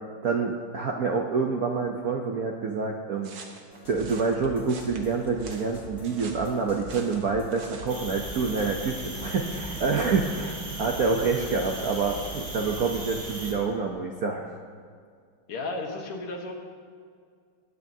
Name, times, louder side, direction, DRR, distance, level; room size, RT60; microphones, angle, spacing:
voice 1, 0.2-3.3 3.9-14.5, right 4 dB, 65° right, 1 dB, 0.9 m, -27 dB
sound 1, 3.2-8.0, right 5 dB, 85° right, 2.1 m, -45 dB
sound 2, 3.7-10.4, equal, 25° left, 1.8 m, -43 dB
sound 3, 7.9-13.5, right 1 dB, 40° right, 2.6 m, -37 dB
voice 2, 15.5-16.5, left 2 dB, 75° left, 1 dB, 2.3 m, -33 dB
21.0 x 9.4 x 2.7 m, 2.1 s
omnidirectional pair, 2.4 m